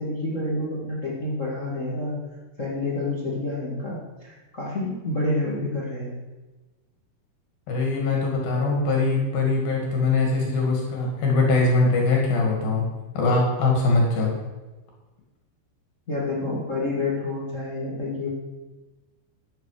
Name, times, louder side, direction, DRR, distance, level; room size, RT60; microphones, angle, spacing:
voice 1, 0.0-2.1 2.6-6.1 16.1-18.3, left 2 dB, 30° left, -4 dB, 1.7 m, -28 dB
voice 2, 7.7-12.8 13.2-14.3, left 3 dB, 70° left, -1 dB, 4.0 m, -22 dB
12.5 x 9.4 x 5.0 m, 1.2 s
omnidirectional pair, 4.3 m